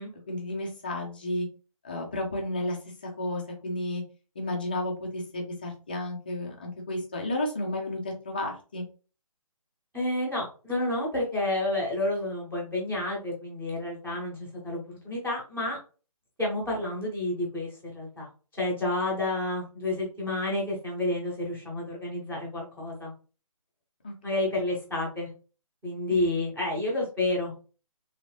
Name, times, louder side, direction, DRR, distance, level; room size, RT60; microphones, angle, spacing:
voice 1, 0.3-1.5 1.8-2.8 3.2-4.0 4.4-8.8 24.0-24.1 26.1-26.3, left 1 dB, 15° left, 1 dB, 0.4 m, -32 dB
voice 2, 9.9-15.8 16.4-18.3 18.6-23.1 24.2-25.3 25.8-27.5, left 2 dB, 5° right, -9 dB, 0.8 m, -30 dB
3.1 x 2.6 x 3.1 m, 0.36 s
hypercardioid pair, 170°, 19 cm